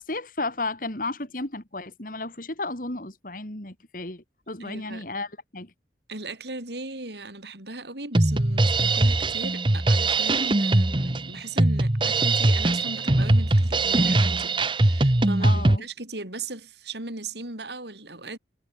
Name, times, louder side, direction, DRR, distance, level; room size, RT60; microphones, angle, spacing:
voice 1, 0.0-5.7 15.4-15.9, left 2 dB, 50° left, 3.5 m, -33 dB
voice 2, 4.6-5.0 6.1-18.4, right 2 dB, 75° right, 6.3 m, -38 dB
Drum kit, 8.1-15.8, right 2 dB, 30° right, 1.0 m, -21 dB
head